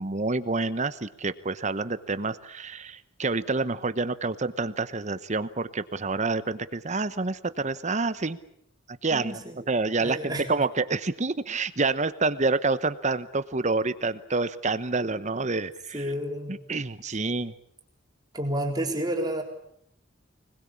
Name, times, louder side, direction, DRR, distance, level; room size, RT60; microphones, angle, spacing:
voice 1, 0.0-8.4 8.9-9.4 9.7-16.0 16.5-17.5, right 3 dB, 35° right, 13 dB, 1.0 m, -28 dB
voice 2, 9.1-9.6 10.0-10.5 15.9-16.6 18.3-19.4, right 1 dB, 20° right, 1 dB, 3.8 m, -30 dB
25.5 x 20.0 x 8.6 m, 0.72 s
head